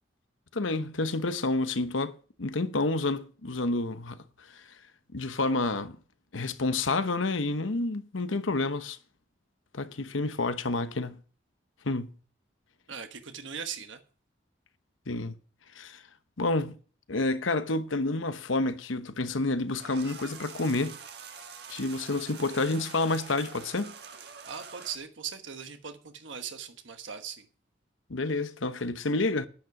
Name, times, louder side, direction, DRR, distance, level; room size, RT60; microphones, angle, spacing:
voice 1, 0.5-2.1 2.4-4.2 5.1-6.0 6.3-9.0 9.7-11.2 11.8-12.1 15.1-15.3 15.7-16.0 16.4-16.8 17.1-21.0 21.7-23.9 28.1-29.5, left 2 dB, 90° left, 1.0 m, -29 dB
voice 2, 12.9-14.0 24.4-27.5, right 7 dB, 80° right, 1.2 m, -39 dB
sound 1, 19.7-25.0, right 6 dB, 55° right, 1.5 m, -45 dB
10.5 x 9.5 x 5.9 m
head